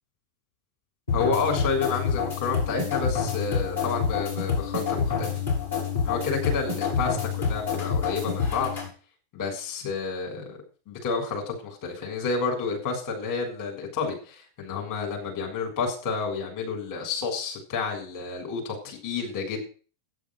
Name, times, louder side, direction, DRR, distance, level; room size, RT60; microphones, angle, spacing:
sound 1, 1.1-8.9, left 6 dB, 80° left, 7.5 m, -27 dB
voice 1, 1.1-5.4 6.0-8.7 9.3-10.6 10.9-19.6, left 4 dB, 50° left, 1 dB, 7.2 m, -30 dB
11.5 x 10.5 x 6.5 m, 0.38 s
figure-of-eight pair, 90°, 0 cm